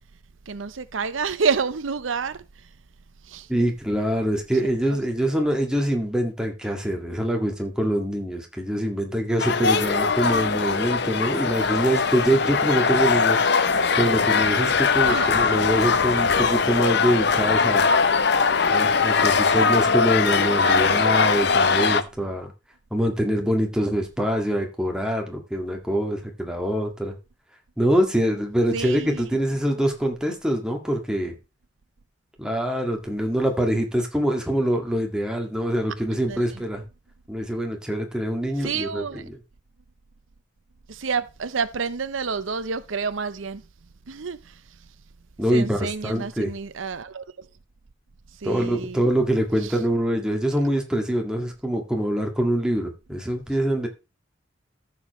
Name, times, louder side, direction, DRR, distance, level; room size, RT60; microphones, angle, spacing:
voice 1, 0.5-2.7 3.2-3.5 15.0-15.3 20.5-21.1 28.7-29.2 36.3-36.6 38.6-39.3 40.9-43.6 44.1-44.6 45.5-47.5 48.4-49.0 49.6-49.8, right 5 dB, 85° right, 0.7 m, -29 dB
voice 2, 3.5-13.4 14.0-17.9 18.7-22.5 22.9-27.2 27.8-31.3 32.4-36.8 37.3-39.4 45.4-46.5 48.4-53.9, equal, 5° right, 1.9 m, -24 dB
sound 1, 9.4-22.0, left 5 dB, 60° left, 0.7 m, -21 dB
14.0 x 6.9 x 3.1 m
head